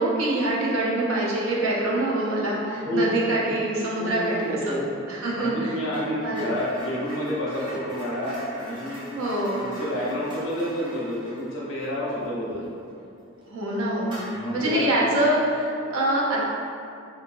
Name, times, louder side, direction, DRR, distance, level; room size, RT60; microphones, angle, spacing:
voice 1, 0.0-4.7 5.1-5.7 6.2-6.4 9.2-9.7 13.5-14.1 14.5-16.4, right 1 dB, 80° right, -5 dB, 0.6 m, -25 dB
voice 2, 2.8-3.4 4.0-4.8 5.3-9.1 9.5-12.8 14.0-15.0, equal, 65° left, -6 dB, 0.7 m, -29 dB
sound 1, 4.2-4.5 4.8-13.0 13.3-13.5 14.0-14.8, equal, 25° right, 0.5 m, -43 dB
2.7 x 2.6 x 2.5 m, 2.5 s
head